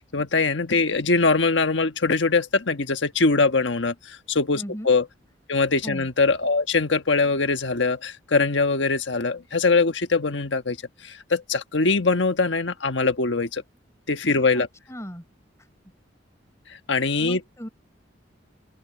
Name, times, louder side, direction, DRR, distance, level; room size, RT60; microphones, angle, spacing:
voice 1, 0.1-5.0 5.5-10.8 11.0-13.6 14.1-14.7 16.9-17.4, left 3 dB, 70° left, 1.4 m, -22 dB
voice 2, 4.5-4.9 5.8-6.1 14.5-15.2 15.6-15.7 17.2-17.7, equal, 15° left, 7.1 m, -37 dB
open air
head